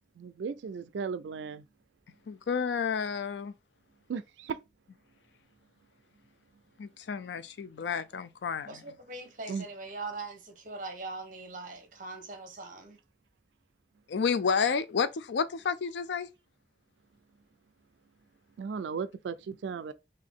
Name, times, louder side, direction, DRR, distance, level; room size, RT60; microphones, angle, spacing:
voice 1, 0.2-1.6 4.1-4.6 9.5-9.7 18.6-19.9, right 5 dB, 85° right, 0.3 m, -36 dB
voice 2, 2.3-3.5 6.8-8.8 14.1-16.3, left 6 dB, 80° left, 0.4 m, -30 dB
voice 3, 8.7-13.0, right 3 dB, 45° right, 1.0 m, -41 dB
3.9 x 2.6 x 3.5 m
head